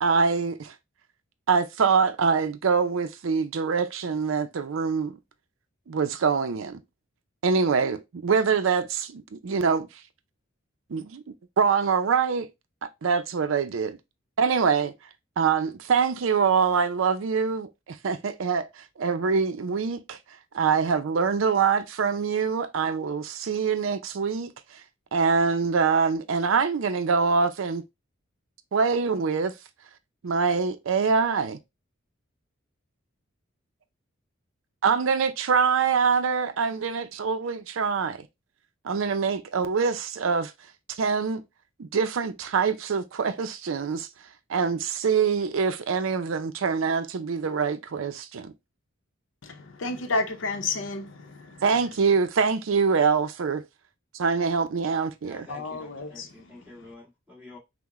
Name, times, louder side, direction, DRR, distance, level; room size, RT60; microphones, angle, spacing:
voice 1, 0.0-0.7 1.5-5.2 5.9-6.8 7.4-9.9 10.9-11.2 11.6-12.5 12.8-14.0 14.4-14.9 15.4-20.2 20.5-24.8 25.1-27.8 28.7-29.5 30.2-31.6 34.8-38.2 38.8-40.5 40.9-41.4 41.8-44.1 44.5-48.5 51.6-53.6 54.1-55.5, right 5 dB, 75° right, 0.5 m, -24 dB
voice 2, 49.4-51.6 55.5-56.4, left 3 dB, 65° left, 0.7 m, -31 dB
voice 3, 55.2-57.6, left 2 dB, 10° right, 1.6 m, -48 dB
5.7 x 2.1 x 3.0 m
head